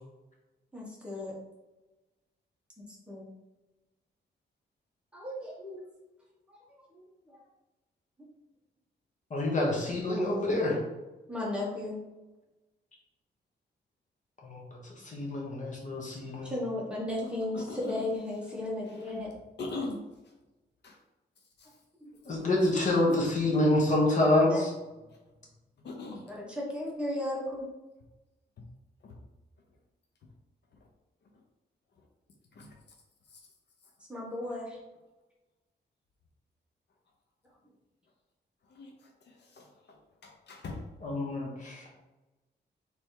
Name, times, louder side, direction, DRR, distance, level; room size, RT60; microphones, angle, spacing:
voice 1, 0.7-1.3 3.1-3.2 5.1-5.8 6.5-7.0 7.3-7.4 8.2-8.3 11.3-12.0 16.4-19.3 22.0-22.1 24.5-24.6 26.3-27.7 34.1-34.8, left 1 dB, 5° right, -4 dB, 1.2 m, -35 dB
voice 2, 9.3-10.8 14.4-14.8 15.0-16.5 22.2-24.7 41.0-41.9, left 1 dB, 45° left, -2 dB, 1.3 m, -27 dB
voice 3, 17.2-18.1 19.6-20.0 20.8-21.0 21.6-21.7 25.8-26.2 29.0-29.2 32.6-32.7 38.7-39.7 40.2-40.8, left 3 dB, 70° left, 1 dB, 0.7 m, -40 dB
3.4 x 3.3 x 4.5 m, 1.1 s
wide cardioid pair, 155°, 18 cm